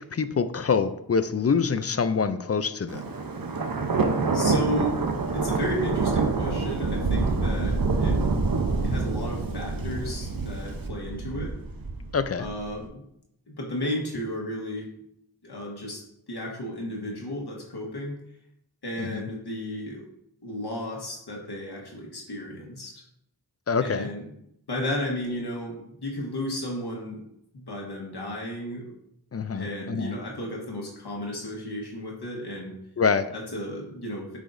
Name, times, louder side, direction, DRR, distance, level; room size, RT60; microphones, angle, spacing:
voice 1, 0.0-3.0 7.6-7.7 12.1-12.5 19.0-19.3 23.7-24.1 29.3-30.2 33.0-33.3, left 5 dB, 40° left, 12 dB, 0.5 m, -26 dB
Thunder, 2.9-12.7, right 3 dB, 60° right, 0.8 m, -27 dB
voice 2, 4.3-5.0 5.3-8.2 8.8-11.6 12.4-13.0 13.5-14.9 15.4-18.2 18.8-20.1 20.4-23.0 23.8-24.2 24.7-27.2 27.5-28.9 29.5-32.8 33.3-34.4, left 1 dB, 85° left, -1 dB, 1.4 m, -33 dB
8.7 x 5.0 x 2.6 m, 0.77 s
wide cardioid pair, 50°, 38 cm